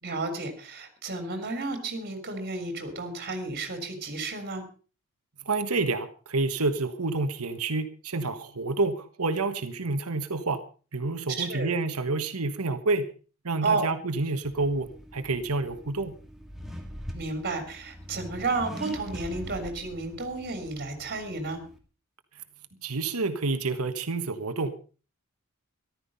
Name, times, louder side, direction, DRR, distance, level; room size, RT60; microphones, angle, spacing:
voice 1, 0.0-4.6 11.3-11.7 13.6-13.9 17.1-21.6, right 3 dB, 45° right, 6 dB, 3.5 m, -32 dB
voice 2, 5.4-10.6 10.9-13.1 13.4-16.1 22.8-24.8, right 3 dB, 75° right, 9 dB, 1.4 m, -28 dB
Accelerating revving vroom, 14.4-21.8, equal, ahead, 2.4 m, -43 dB
14.5 x 12.5 x 5.4 m, 0.38 s
head